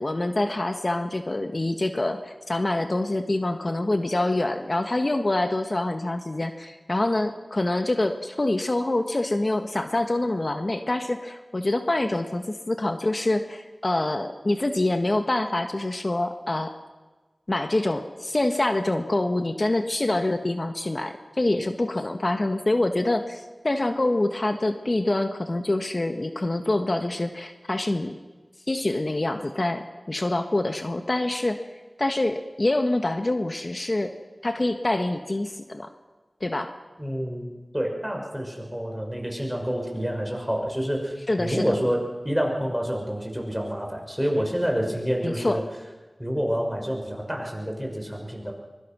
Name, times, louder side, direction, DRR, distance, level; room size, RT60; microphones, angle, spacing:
voice 1, 0.0-16.7 17.5-28.2 28.7-31.6 32.0-34.1 34.4-35.9 36.4-36.7 41.3-41.8 45.2-45.6, left 2 dB, 45° left, 7 dB, 1.5 m, -26 dB
voice 2, 37.0-37.5 37.7-42.0 42.2-45.6 46.2-48.5, equal, 5° right, 1 dB, 6.0 m, -28 dB
23.5 x 22.5 x 6.2 m, 1.2 s
wide cardioid pair, 45°, 0 cm